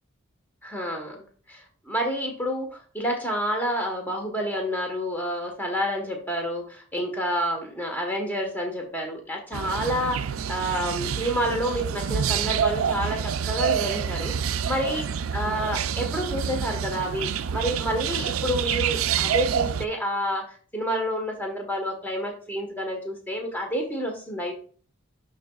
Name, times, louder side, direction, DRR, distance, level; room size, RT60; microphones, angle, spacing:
voice 1, 0.6-15.0 15.3-24.6, equal, 10° left, 1 dB, 1.3 m, -29 dB
sound 1, 9.5-19.8, right 7 dB, 90° right, 0.4 m, -27 dB
10.0 x 4.0 x 2.4 m, 0.42 s
head